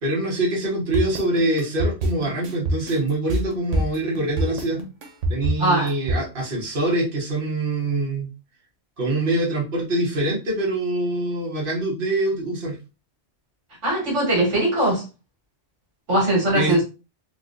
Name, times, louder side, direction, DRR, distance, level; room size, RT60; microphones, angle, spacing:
voice 1, 0.0-4.8 5.3-8.3 9.0-12.8 16.5-16.8, right 2 dB, 50° right, 1.4 m, -24 dB
sound 1, 0.9-6.2, right 1 dB, 90° right, 1.1 m, -25 dB
voice 2, 5.6-5.9 13.8-15.0 16.1-16.8, right 1 dB, 70° right, 1.9 m, -20 dB
3.9 x 2.4 x 2.5 m
omnidirectional pair, 1.2 m